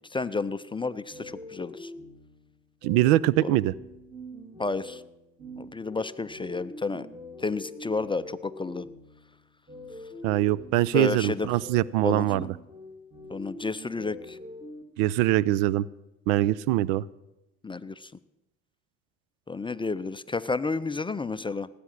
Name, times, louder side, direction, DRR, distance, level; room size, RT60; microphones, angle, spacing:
voice 1, 0.1-1.9 3.4-3.6 4.6-5.0 5.6-7.1 7.4-8.9 10.9-11.5 12.0-12.5 13.3-14.4 17.6-18.1 19.5-21.7, left 4 dB, 15° left, 14 dB, 0.4 m, -31 dB
sound 1, 1.1-14.8, left 1 dB, 10° right, 2.4 m, -44 dB
voice 2, 2.8-3.7 10.2-12.5 15.0-15.9 16.3-17.1, right 15 dB, 75° right, 22 dB, 0.6 m, -23 dB
18.0 x 8.5 x 6.4 m, 0.94 s
hypercardioid pair, 70°, 40 cm